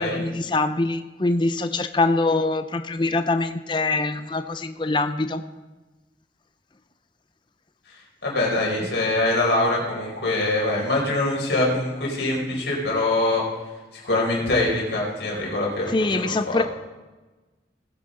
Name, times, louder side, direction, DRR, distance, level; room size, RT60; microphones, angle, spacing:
voice 1, 0.0-5.4 15.9-16.6, left 2 dB, 25° left, 10 dB, 0.5 m, -24 dB
voice 2, 8.2-13.4 13.9-16.6, left 2 dB, 75° left, -3 dB, 4.6 m, -24 dB
19.5 x 9.6 x 3.8 m, 1.2 s
head